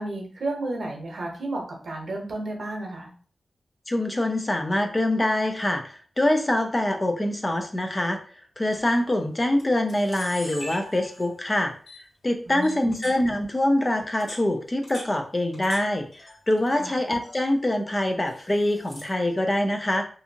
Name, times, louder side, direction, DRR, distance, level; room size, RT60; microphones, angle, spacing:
voice 1, 0.0-3.1 12.5-13.1 16.8-16.9, right 2 dB, 60° right, 1 dB, 0.8 m, -32 dB
voice 2, 3.9-8.2 8.6-11.7 12.2-20.1, left 1 dB, 20° left, 5 dB, 0.3 m, -24 dB
Camera, 8.7-9.0 9.6-9.7 9.9-11.4 11.9-12.0 12.6-13.2 14.0-15.8 16.1-16.8 17.1-17.5 18.3-19.1, left 1 dB, 75° left, 1.4 m, -41 dB
2.6 x 2.5 x 2.7 m, 0.42 s
wide cardioid pair, 140°, 0 cm